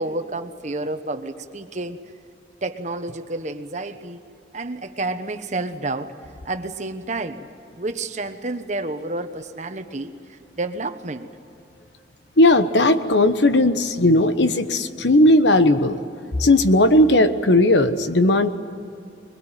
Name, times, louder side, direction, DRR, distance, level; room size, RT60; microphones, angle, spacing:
voice 1, 0.0-2.0 2.6-4.2 4.5-6.1 6.4-7.5 7.8-11.3, right 2 dB, 40° right, 8 dB, 1.2 m, -30 dB
voice 2, 12.4-16.0 16.4-18.5, left 1 dB, 85° left, 10 dB, 1.2 m, -16 dB
22.5 x 22.0 x 9.1 m, 2.7 s
head